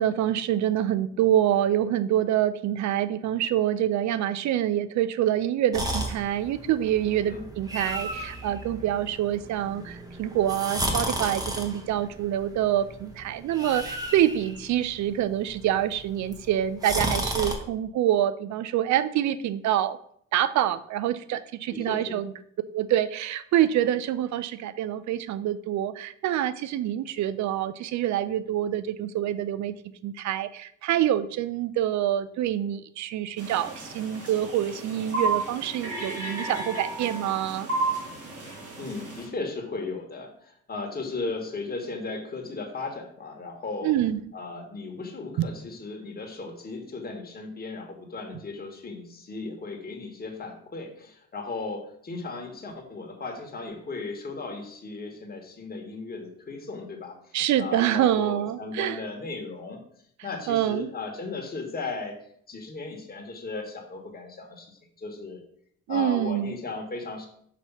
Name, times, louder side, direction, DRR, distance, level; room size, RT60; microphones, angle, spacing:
voice 1, 0.0-20.0 20.3-22.3 22.7-29.7 30.0-37.7 43.8-44.2 57.3-59.0 60.5-60.9 65.9-66.6, right 11 dB, 70° right, 14 dB, 0.5 m, -26 dB
sound 1, 5.7-17.6, right 1 dB, 10° right, 1.1 m, -34 dB
voice 2, 21.7-22.2 38.8-43.9 44.3-57.1 57.6-59.8 60.2-62.2 62.5-64.7 65.0-65.4 65.9-67.3, left 3 dB, 30° left, 2 dB, 1.5 m, -36 dB
sound 2, 33.4-39.2, right 3 dB, 55° right, 2.6 m, -32 dB
6.0 x 3.0 x 5.5 m, 0.66 s
cardioid pair, 90°, 30 cm